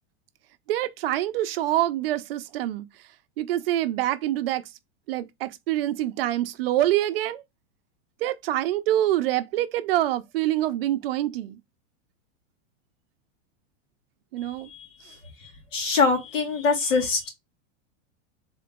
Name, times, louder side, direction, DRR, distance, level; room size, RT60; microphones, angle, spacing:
voice 1, 0.7-2.9 3.4-4.6 5.1-7.4 8.2-11.6 14.3-14.7, right 13 dB, 55° right, 0.5 m, -25 dB
voice 2, 14.4-14.9 15.4-17.3, left 4 dB, 85° left, 2.3 m, -24 dB
3.8 x 2.9 x 3.5 m
supercardioid pair, 170°, 37 cm